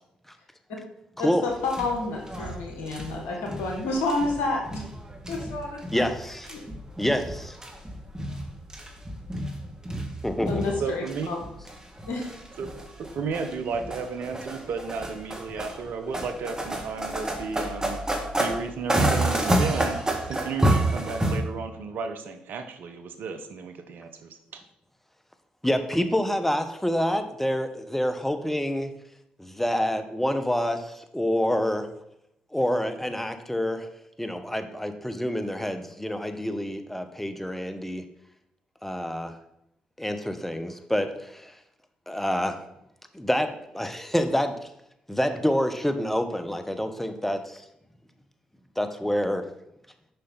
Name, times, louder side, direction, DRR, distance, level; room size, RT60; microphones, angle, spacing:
voice 1, 1.2-4.8 5.3-6.0 6.5-6.6 10.5-11.4 12.1-12.3, left 3 dB, 75° left, 1 dB, 1.5 m, -29 dB
sound 1, 1.5-21.4, right 1 dB, 20° right, 1.9 m, -30 dB
voice 2, 5.9-6.5 7.0-7.5 10.2-10.6 25.6-28.9 29.4-31.9 32.5-33.9 34.2-38.0 38.8-39.3 40.0-41.6 42.1-42.6 43.1-44.5 45.1-47.6 48.8-49.4, equal, 5° left, 7 dB, 1.0 m, -27 dB
voice 3, 10.8-11.3 12.6-12.7 13.0-18.0 18.4-20.0 20.3-24.6, right 5 dB, 65° right, 7 dB, 0.9 m, -33 dB
6.7 x 5.5 x 4.0 m, 0.80 s
hypercardioid pair, 40°, 4 cm